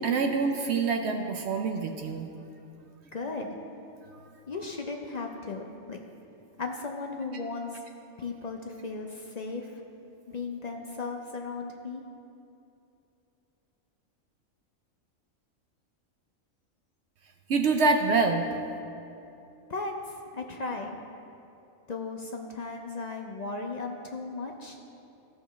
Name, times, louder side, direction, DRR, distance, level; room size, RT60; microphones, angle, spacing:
voice 1, 0.0-2.3 17.5-18.5, right 4 dB, 65° right, 4 dB, 0.7 m, -26 dB
voice 2, 3.1-3.6 4.5-6.0 6.6-7.8 8.2-9.8 10.3-12.0 19.7-21.0 21.9-24.8, left 3 dB, 55° left, 2 dB, 0.4 m, -36 dB
14.5 x 6.1 x 3.1 m, 2.8 s
omnidirectional pair, 1.4 m